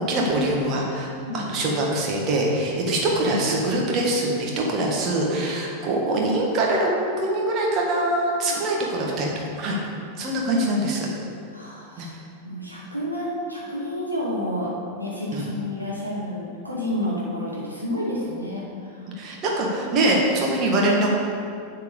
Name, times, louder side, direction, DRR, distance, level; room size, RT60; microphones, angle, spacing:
voice 1, 0.0-1.1 1.3-6.9 7.2-9.3 9.6-9.8 10.1-11.1 12.0-12.1 15.3-15.5 19.2-21.1, right 1 dB, 35° right, -2 dB, 1.8 m, -23 dB
voice 2, 11.5-12.1 12.4-14.7 15.0-19.1, left 1 dB, 90° right, -6 dB, 2.1 m, -30 dB
8.3 x 4.7 x 7.1 m, 2.4 s
figure-of-eight pair, 90°, 0 cm